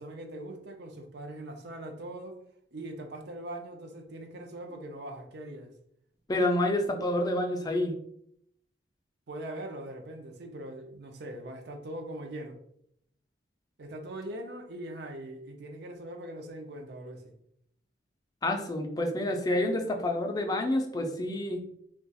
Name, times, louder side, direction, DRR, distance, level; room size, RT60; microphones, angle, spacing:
voice 1, 0.0-2.4 2.7-5.7 9.3-12.6 13.8-17.3, right 1 dB, 60° right, 4 dB, 0.5 m, -41 dB
voice 2, 6.3-7.9 18.4-21.6, left 1 dB, 20° left, 3 dB, 0.4 m, -28 dB
2.3 x 2.3 x 3.9 m, 0.72 s
head